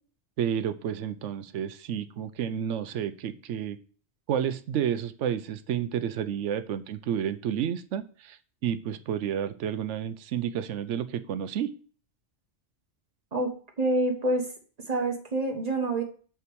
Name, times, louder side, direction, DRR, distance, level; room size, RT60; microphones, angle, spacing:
voice 1, 0.4-3.8 4.3-11.7, right 9 dB, 85° right, 12 dB, 0.9 m, -30 dB
voice 2, 13.8-14.5 14.9-16.0, right 1 dB, 35° right, 2 dB, 1.5 m, -26 dB
6.2 x 5.7 x 6.1 m, 0.42 s
omnidirectional pair, 1.2 m